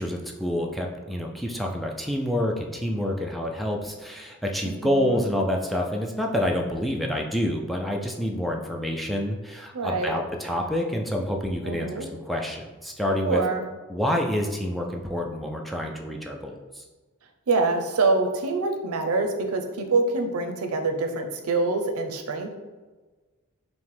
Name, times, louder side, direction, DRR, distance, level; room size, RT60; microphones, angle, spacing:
voice 1, 0.0-13.4 13.9-16.8, left 1 dB, ahead, 0 dB, 0.3 m, -28 dB
voice 2, 4.6-5.3 9.7-10.2 11.6-12.1 13.2-13.6 17.5-22.5, right 3 dB, 80° right, 5 dB, 0.6 m, -25 dB
5.8 x 2.1 x 3.3 m, 1.3 s
head